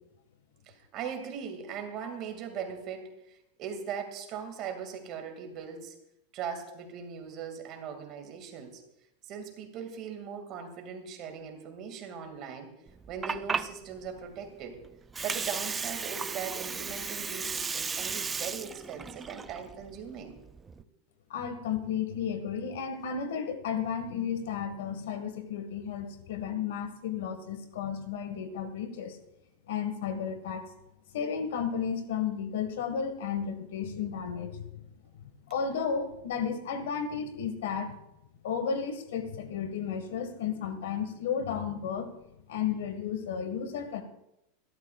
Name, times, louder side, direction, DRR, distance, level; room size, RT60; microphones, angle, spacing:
voice 1, 0.7-5.9 6.3-8.8 9.3-12.7 13.1-14.8 15.2-20.3, right 7 dB, 35° right, 5 dB, 2.2 m, -39 dB
Water, 12.9-20.8, right 5 dB, 15° right, 0.3 m, -35 dB
voice 2, 21.3-29.2 29.7-30.6 31.1-34.8 35.5-37.9 38.4-42.1 42.5-44.0, left 7 dB, 85° left, 8 dB, 1.7 m, -33 dB
24.5 x 12.5 x 2.4 m, 0.85 s
supercardioid pair, 160°, 0 cm